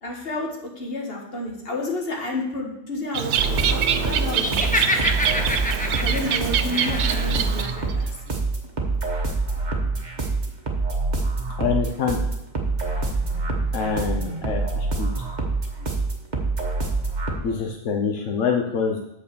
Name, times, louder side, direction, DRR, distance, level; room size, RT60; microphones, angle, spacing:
voice 1, 0.0-0.5 0.8-4.8 6.0-8.1, left 2 dB, 55° left, 0 dB, 1.9 m, -31 dB
Bird, 3.1-7.9, right 8 dB, 75° right, 0.9 m, -25 dB
sound 1, 3.4-17.3, right 3 dB, 40° right, 1.4 m, -26 dB
Laughter, 4.4-7.4, left 1 dB, 10° left, 0.6 m, -26 dB
voice 2, 11.6-12.2 13.7-15.1 17.4-19.0, left 6 dB, 85° left, 2 dB, 1.2 m, -25 dB
8.4 x 4.8 x 6.9 m, 0.85 s
omnidirectional pair, 1.2 m